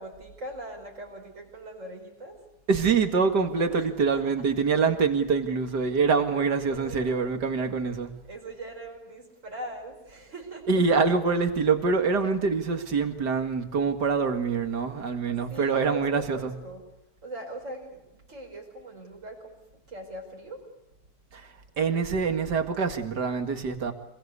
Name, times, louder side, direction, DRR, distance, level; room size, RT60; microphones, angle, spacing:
voice 1, 0.0-2.5 3.7-4.4 6.3-7.3 8.3-10.8 15.5-16.8 17.2-20.7, right 1 dB, 45° right, 0 dB, 5.4 m, -41 dB
voice 2, 2.7-8.2 10.7-16.5 21.3-23.9, right 5 dB, 80° right, 7 dB, 2.6 m, -25 dB
26.0 x 21.5 x 8.3 m, 0.86 s
omnidirectional pair, 1.8 m